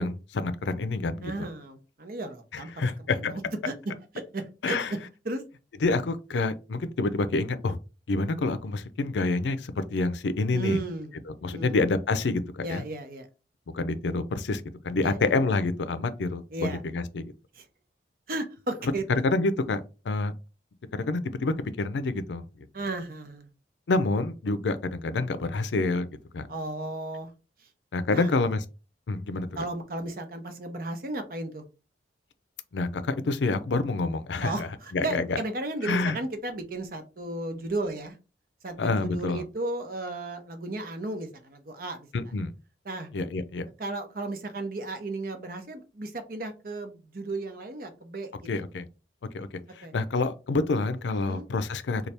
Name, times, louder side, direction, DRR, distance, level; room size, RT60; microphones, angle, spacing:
voice 1, 0.0-1.5 2.5-3.3 4.6-4.9 5.8-7.8 8.1-10.8 11.3-12.4 12.7-12.8 13.7-17.3 19.2-19.8 20.1-20.3 20.9-22.4 23.9-26.1 26.3-26.5 27.9-28.6 29.1-29.6 32.7-35.4 35.8-36.2 38.8-39.4 42.1-42.5 43.1-43.7 48.5-48.9 49.3-49.5 49.8-52.1, left 3 dB, 85° left, 0.5 m, -27 dB
voice 2, 1.2-3.7 4.3-4.8 5.2-5.4 10.5-11.1 11.5-11.8 12.6-13.3 15.0-15.3 16.5-16.8 17.5-17.6 18.3-19.0 22.7-23.5 26.5-27.3 28.1-28.4 29.6-31.6 34.4-38.2 38.6-42.1 42.8-43.1 43.8-48.5 49.8-49.9 51.2-51.4, right 2 dB, 55° right, 0.7 m, -34 dB
3.3 x 2.3 x 4.1 m
head